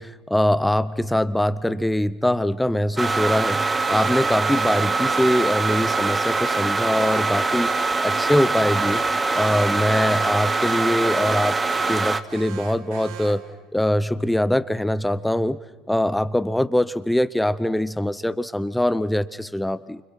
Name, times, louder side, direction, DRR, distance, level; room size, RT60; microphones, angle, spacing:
voice 1, 0.0-7.7 8.0-9.0 9.3-11.6 11.9-13.4 13.7-15.6 15.9-20.0, left 1 dB, 5° left, 15 dB, 0.8 m, -23 dB
sound 1, 3.0-12.2, right 3 dB, 20° right, 1.2 m, -23 dB
Alarm, 3.8-13.5, right 8 dB, 70° right, 2.0 m, -39 dB
29.5 x 26.0 x 6.0 m, 1.1 s
hypercardioid pair, 65°, 0 cm